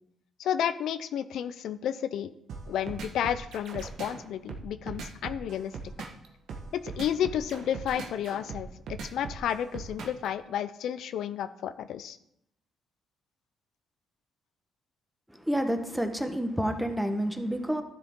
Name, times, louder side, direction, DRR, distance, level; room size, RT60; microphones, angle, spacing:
voice 1, 0.4-2.3 2.7-5.7 6.7-12.2, left 9 dB, 75° left, 13 dB, 0.4 m, -31 dB
sound 1, 2.5-10.3, right 5 dB, 75° right, 1.3 m, -39 dB
voice 2, 15.3-17.8, equal, 5° right, 6 dB, 1.1 m, -29 dB
12.0 x 7.5 x 3.7 m, 0.77 s
cardioid pair, 90°, 0 cm